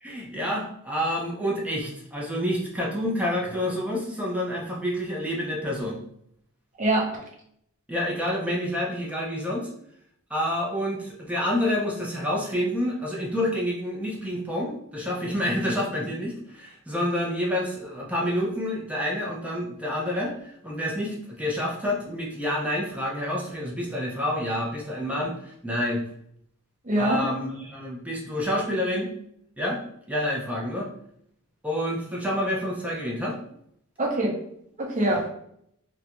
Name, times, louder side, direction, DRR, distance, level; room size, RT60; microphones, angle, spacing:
voice 1, 0.0-6.0 7.9-9.7 10.3-26.0 27.0-29.1 29.6-29.8 30.1-30.9 31.6-33.4, left 1 dB, 5° right, -3 dB, 0.4 m, -28 dB
voice 2, 6.8-7.1 26.8-27.2 34.0-34.3 34.8-35.3, right 1 dB, 35° right, -2 dB, 0.7 m, -23 dB
2.4 x 2.1 x 2.9 m, 0.69 s
head